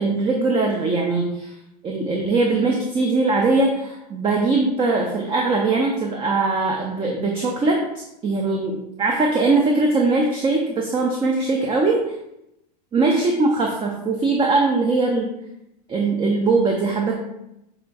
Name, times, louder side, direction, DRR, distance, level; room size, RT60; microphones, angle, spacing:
voice 1, 0.0-1.5 1.8-7.8 8.2-12.0 12.9-15.3 15.9-17.1, right 3 dB, 25° right, 1 dB, 0.5 m, -21 dB
5.6 x 2.6 x 2.3 m, 0.85 s
hypercardioid pair, 95°, 21 cm